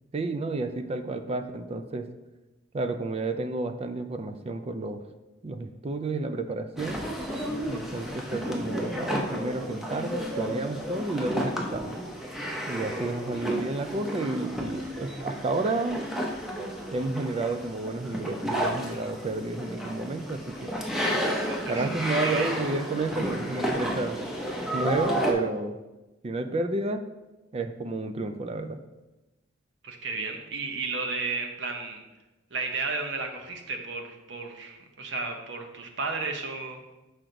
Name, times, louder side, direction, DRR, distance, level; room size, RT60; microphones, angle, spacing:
voice 1, 0.1-2.1 2.7-5.0 5.4-7.0 7.7-12.0 12.7-16.0 16.7-20.7 21.7-24.3 24.7-25.8 26.2-27.0 27.5-28.8, right 2 dB, 30° right, 8 dB, 0.4 m, -31 dB
sound 1, 6.7-25.3, equal, ahead, 0.8 m, -32 dB
voice 2, 21.5-22.5 29.8-32.0 32.5-36.9, right 4 dB, 65° right, 4 dB, 0.9 m, -33 dB
6.1 x 5.0 x 3.9 m, 1.1 s
head